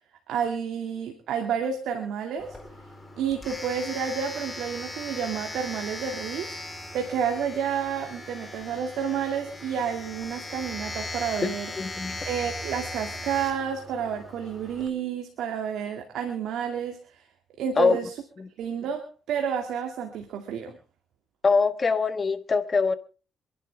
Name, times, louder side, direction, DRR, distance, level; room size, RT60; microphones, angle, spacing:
voice 1, 0.3-2.6 3.2-6.6 6.9-11.7 12.2-17.0 17.6-18.1 18.6-20.8, right 7 dB, 80° right, 2.3 m, -30 dB
Domestic sounds home sounds, 2.4-14.9, left 1 dB, 10° left, 4.0 m, -38 dB
voice 2, 11.4-12.2 17.8-18.0 18.4-18.5 21.4-22.9, left 4 dB, 35° left, 1.5 m, -23 dB
27.0 x 11.0 x 3.5 m
cardioid pair, 90°, 0 cm